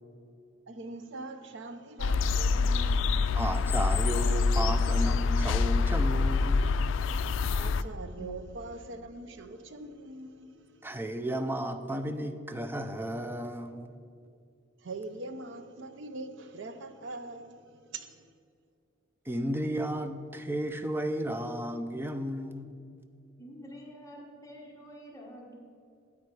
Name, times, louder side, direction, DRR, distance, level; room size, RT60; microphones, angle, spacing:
voice 1, 0.7-3.4 7.5-10.9 14.8-18.3, right 2 dB, 65° right, 0.6 m, -43 dB
sound 1, 2.0-7.8, left 4 dB, 70° left, 0.3 m, -26 dB
voice 2, 3.3-6.7 8.2-8.3 10.8-13.9 19.3-22.7, right 1 dB, 10° right, 0.4 m, -33 dB
voice 3, 23.4-25.5, equal, 15° left, 1.3 m, -47 dB
9.0 x 8.6 x 4.7 m
head